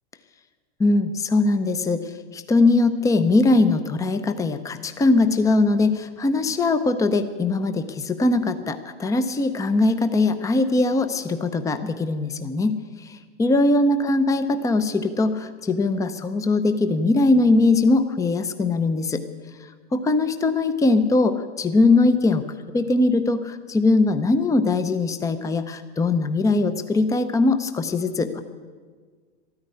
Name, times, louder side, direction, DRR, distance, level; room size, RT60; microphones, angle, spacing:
voice 1, 0.8-19.2 19.9-22.4 22.7-28.4, left 2 dB, 10° left, 10 dB, 0.7 m, -21 dB
13.0 x 9.7 x 9.8 m, 1.5 s
hypercardioid pair, 120°, 34 cm